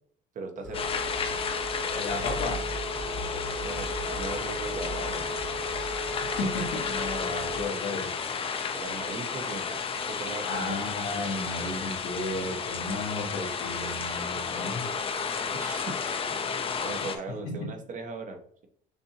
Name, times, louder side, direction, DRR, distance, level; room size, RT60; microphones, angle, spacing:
voice 1, 0.3-0.8 3.6-5.4 8.7-9.8 10.1-10.8 15.5-16.1 16.5-18.7, right 3 dB, 50° right, 5 dB, 0.9 m, -39 dB
Telephone, 0.6-7.6, right 1 dB, ahead, 0.9 m, -36 dB
sound 1, 0.7-17.2, left 6 dB, 35° left, 0.5 m, -32 dB
voice 2, 1.9-2.7 5.9-6.0 6.4-8.1 10.4-14.9 17.3-17.7, left 2 dB, 90° left, -1 dB, 1.4 m, -34 dB
6.6 x 2.7 x 2.8 m, 0.64 s
cardioid pair, 110°, 17 cm